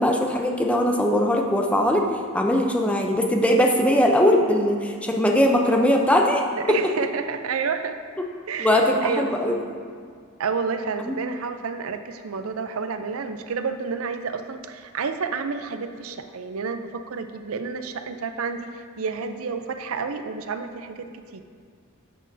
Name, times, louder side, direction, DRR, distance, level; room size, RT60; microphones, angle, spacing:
voice 1, 0.0-2.0 2.3-6.4 8.6-9.6 11.0-11.2, left 1 dB, 5° left, 1 dB, 0.6 m, -20 dB
voice 2, 6.5-8.0 8.5-9.6 10.4-21.4, right 5 dB, 85° right, 8 dB, 0.5 m, -30 dB
12.5 x 7.7 x 2.7 m, 2.1 s
head